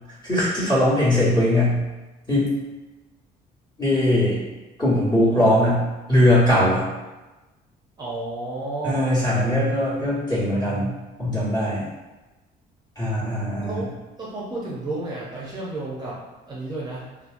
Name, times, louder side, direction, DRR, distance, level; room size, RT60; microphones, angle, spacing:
voice 1, 0.2-1.8 2.3-2.5 3.8-4.4 4.8-5.8 6.1-6.9 8.8-10.9 11.2-11.9 13.0-13.8, left 1 dB, 25° left, -9 dB, 1.4 m, -20 dB
voice 2, 8.0-9.1 13.6-13.9 14.2-16.2 16.5-17.1, right 2 dB, 25° right, -7 dB, 0.6 m, -31 dB
2.9 x 2.0 x 2.5 m, 1.1 s
cardioid pair, 110°, 17 cm